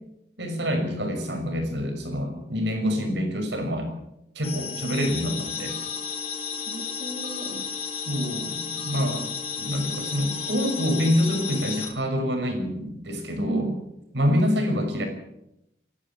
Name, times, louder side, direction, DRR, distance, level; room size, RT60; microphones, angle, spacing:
voice 1, 0.4-3.9 4.3-5.8 8.1-9.3 9.6-13.7 14.1-15.1, equal, 85° right, 5 dB, 6.2 m, -26 dB
sound 1, 4.4-11.9, left 6 dB, 35° left, 4.4 m, -33 dB
voice 2, 6.5-7.6 13.4-13.8 14.3-14.8, right 2 dB, 40° right, 2 dB, 2.7 m, -32 dB
27.5 x 11.5 x 8.8 m, 0.84 s
head